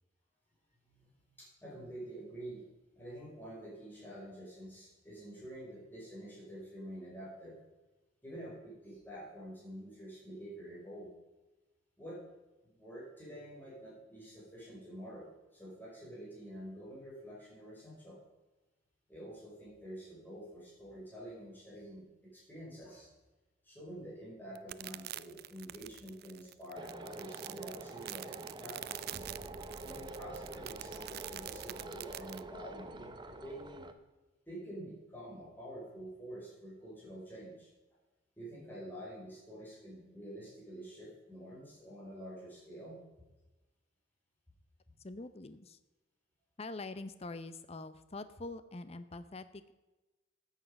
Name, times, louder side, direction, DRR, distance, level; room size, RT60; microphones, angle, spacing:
voice 1, 1.4-2.6 2.9-7.6 8.2-11.1 12.0-12.2 12.6-18.2 19.1-23.1 23.6-29.3 29.8-33.9 34.5-37.7 38.4-43.0, right 1 dB, 10° left, -6 dB, 5.3 m, -48 dB
sound 1, 24.5-32.4, right 14 dB, 55° right, 0.4 m, -45 dB
sound 2, 26.7-33.9, right 2 dB, 25° right, 0.9 m, -47 dB
voice 2, 45.0-45.8 46.6-49.7, left 2 dB, 35° left, 12 dB, 0.6 m, -44 dB
13.5 x 8.4 x 5.3 m, 1.1 s
head